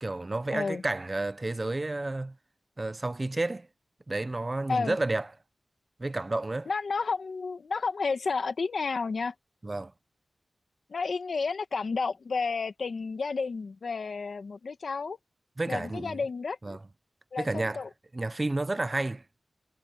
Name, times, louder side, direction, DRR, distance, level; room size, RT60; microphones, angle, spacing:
voice 1, 0.0-2.3 2.8-3.7 4.1-5.3 6.0-6.7 9.6-9.9 15.6-16.2 16.6-16.8 17.4-17.8 18.1-19.2, right 2 dB, 30° right, 0.7 m, -31 dB
voice 2, 0.5-0.8 4.7-5.0 6.7-9.3 10.9-15.2 15.7-16.8 17.3-17.9, left 4 dB, 75° left, 1.5 m, -31 dB
wide cardioid pair, 105°, 0 cm